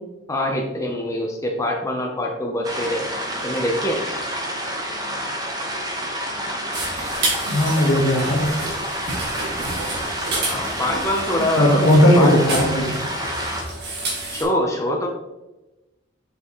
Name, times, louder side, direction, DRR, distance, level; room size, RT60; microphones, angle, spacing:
voice 1, 0.3-4.0 10.4-11.9 12.2-12.3 14.3-15.1, left 1 dB, 15° left, 0 dB, 0.7 m, -24 dB
sound 1, 2.6-13.6, equal, 20° right, 1.1 m, -29 dB
sound 2, 6.7-14.4, right 2 dB, 60° right, 2.1 m, -30 dB
voice 2, 7.5-8.5 11.6-13.0, equal, 70° left, 1 dB, 1.4 m, -17 dB
6.0 x 5.6 x 3.0 m, 1.0 s
head